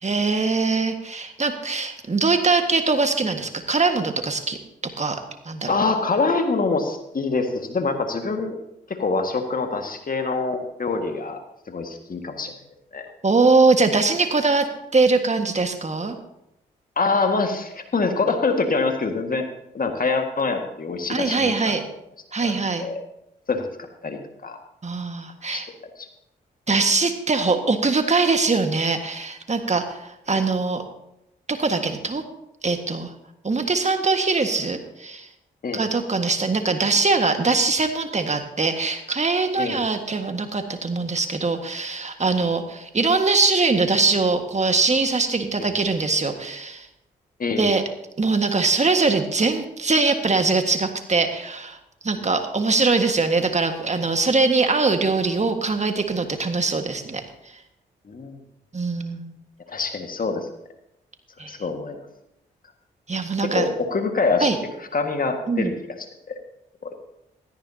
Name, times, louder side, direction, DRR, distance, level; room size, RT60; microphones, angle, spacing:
voice 1, 0.0-4.6 5.0-5.2 5.4-5.7 13.2-14.7 14.9-16.1 21.1-21.8 22.3-22.9 24.8-25.6 26.7-30.8 31.5-32.2 32.6-33.1 33.4-35.3 35.7-46.9 47.6-47.8 48.2-51.8 52.0-57.2 58.7-59.3 61.4-61.6 63.1-63.7 64.4-64.6 65.5-65.7, right 3 dB, 35° right, 6 dB, 1.7 m, -22 dB
voice 2, 5.7-8.6 8.9-11.4 11.7-12.5 12.9-13.1 17.0-19.4 19.7-21.7 22.4-23.0 23.5-23.7 24.0-24.6 25.5-25.6 26.0-26.1 30.3-30.4 35.6-35.8 39.6-39.8 45.6-45.7 47.4-47.8 52.1-52.3 58.1-58.4 59.7-60.5 61.5-62.0 63.5-64.5 64.9-66.4 66.8-66.9, left 4 dB, 45° left, 5 dB, 1.8 m, -25 dB
16.0 x 14.0 x 2.8 m, 0.82 s
hypercardioid pair, 40°, 20 cm